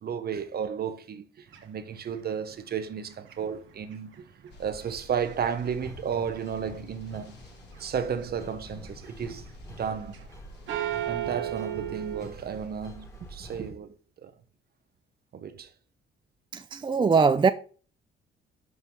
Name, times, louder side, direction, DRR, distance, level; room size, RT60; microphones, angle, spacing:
voice 1, 0.0-4.3 4.6-7.3 7.8-10.3 11.1-13.9 14.2-14.3 15.3-15.7, right 7 dB, 50° right, 1.0 m, -33 dB
sound 1, 1.5-5.6 5.9-6.8 7.2-7.8 8.1-10.4 10.7-12.2, right 12 dB, 75° right, 1.4 m, -36 dB
sound 2, 4.5-13.5, right 1 dB, 55° left, 3.1 m, -49 dB
sound 3, 5.7-13.7, left 1 dB, 15° left, 2.0 m, -48 dB
voice 2, 16.5-17.5, right 5 dB, 25° right, 0.5 m, -21 dB
6.3 x 5.6 x 5.3 m
cardioid pair, 90°, 20 cm